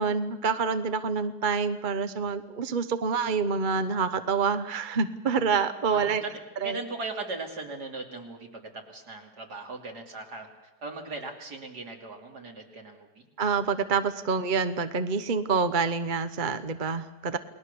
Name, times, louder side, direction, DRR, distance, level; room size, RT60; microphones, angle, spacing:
voice 1, 0.0-6.2 6.6-6.8 13.4-17.4, right 5 dB, 35° right, 10 dB, 0.9 m, -27 dB
voice 2, 5.9-10.5 10.8-13.2, right 3 dB, 60° right, 2 dB, 3.6 m, -38 dB
30.0 x 20.0 x 6.9 m, 0.97 s
omnidirectional pair, 1.9 m